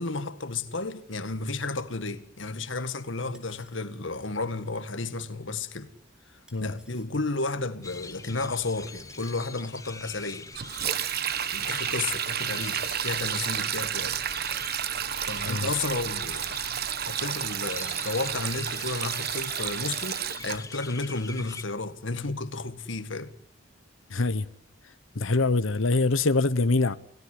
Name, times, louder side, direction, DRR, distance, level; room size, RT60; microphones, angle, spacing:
voice 1, 0.0-5.9 6.6-10.5 11.5-14.2 15.2-23.3, left 3 dB, 70° left, 1.9 m, -32 dB
sound 1, 3.3-3.8 4.9-5.0 6.5-7.1 7.8-8.1 8.8-9.7 10.3-10.6 11.2-13.8 14.0-14.3 14.5-15.5, equal, 5° right, 3.8 m, -57 dB
sound 2, 7.8-21.6, left 4 dB, 15° left, 1.2 m, -44 dB
Sink (filling or washing), 10.5-20.6, right 9 dB, 50° right, 1.1 m, -31 dB
voice 2, 24.1-24.5 25.1-27.0, left 3 dB, 90° left, 1.1 m, -24 dB
29.5 x 16.5 x 9.7 m
head